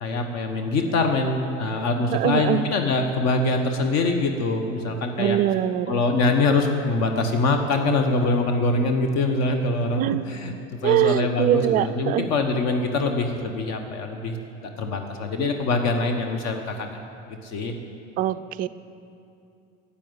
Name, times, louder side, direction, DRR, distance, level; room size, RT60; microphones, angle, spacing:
voice 1, 0.0-5.4 5.9-10.5 10.8-14.4 14.8-17.0 17.4-17.7, left 3 dB, 45° left, 5 dB, 1.2 m, -24 dB
voice 2, 2.1-2.6 5.2-6.0 10.0-10.3 10.8-12.3 18.2-18.7, right 12 dB, 25° right, 12 dB, 0.3 m, -23 dB
13.5 x 8.4 x 7.9 m, 2.7 s
figure-of-eight pair, 70°, 38 cm